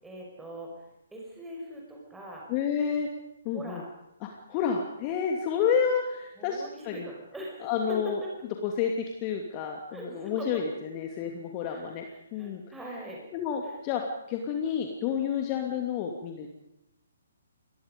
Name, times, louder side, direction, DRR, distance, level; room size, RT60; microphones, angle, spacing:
voice 1, 0.0-2.5 3.5-3.9 6.4-8.3 9.9-10.5 11.6-13.2 13.6-13.8 15.5-15.7, equal, 5° right, -2 dB, 5.7 m, -42 dB
voice 2, 2.5-3.1 3.4-3.8 4.2-7.1 7.6-8.2 8.6-12.0 12.3-12.6 13.3-14.0 14.3-16.5, left 7 dB, 25° left, 2 dB, 2.7 m, -30 dB
29.5 x 22.0 x 5.3 m, 0.84 s
figure-of-eight pair, 130°, 0 cm